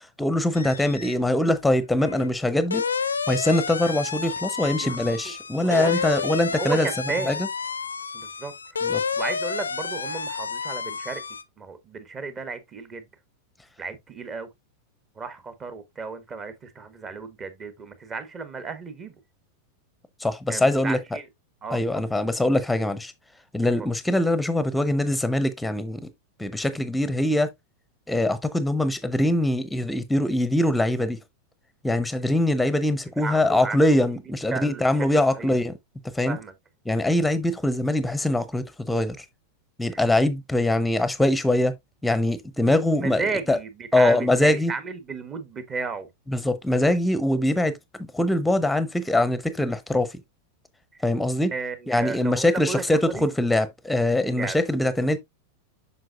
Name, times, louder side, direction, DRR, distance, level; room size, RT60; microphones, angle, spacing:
voice 1, 0.2-2.8 3.3-6.9 7.3-7.5 8.8-9.0 20.2-21.0 21.7-23.1 23.5-26.0 26.4-27.5 28.1-31.2 31.8-35.7 36.1-36.4 36.9-39.2 39.8-41.7 42.0-43.6 43.9-44.7 46.3-50.1 51.0-51.5 51.9-55.2, left 1 dB, 5° left, 0.8 m, -23 dB
sound 1, 0.5-1.2 1.5-11.4, left 5 dB, 75° left, 0.6 m, -30 dB
voice 2, 4.8-5.3 5.6-7.4 8.1-8.5 9.2-11.2 11.6-13.0 13.8-14.5 15.1-19.1 20.5-21.2 21.6-22.1 33.2-34.2 34.5-35.6 36.3-36.5 39.9-40.0 42.9-46.1 50.9-51.0 51.5-53.3 54.2-54.6, right 4 dB, 25° right, 1.3 m, -34 dB
7.6 x 5.9 x 2.4 m
figure-of-eight pair, 90°, 0 cm